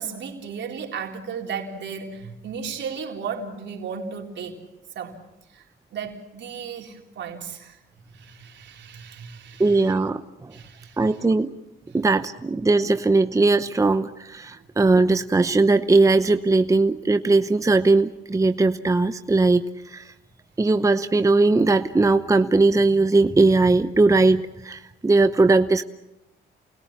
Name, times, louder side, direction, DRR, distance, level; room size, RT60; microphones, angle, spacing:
voice 1, 0.0-4.6 5.0-5.2 5.5-5.6 5.9-7.8 8.1-10.0 10.5-11.2, right 6 dB, 65° right, 2 dB, 3.8 m, -35 dB
voice 2, 9.6-10.5 11.0-11.5 11.9-20.1 20.6-25.8, right 3 dB, 15° right, 10 dB, 0.8 m, -19 dB
29.0 x 20.0 x 7.3 m, 0.92 s
cardioid pair, 90°, 20 cm